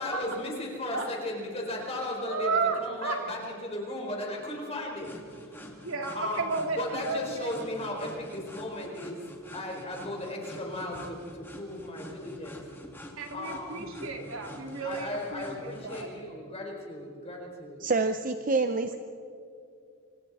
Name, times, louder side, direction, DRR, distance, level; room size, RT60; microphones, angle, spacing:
voice 1, 0.0-5.2 5.5-5.8 6.1-12.6 13.3-13.9 14.8-17.9, left 1 dB, 25° left, 0 dB, 4.4 m, -36 dB
voice 2, 2.3-3.2 5.8-7.5 13.2-16.1 18.9-19.0, right 4 dB, 65° right, 2 dB, 3.0 m, -33 dB
sound 1, 5.0-16.1, left 1 dB, 10° left, 2.3 m, -47 dB
voice 3, 17.8-18.9, right 3 dB, 35° right, 8 dB, 0.7 m, -27 dB
29.0 x 25.5 x 4.2 m, 2.5 s
head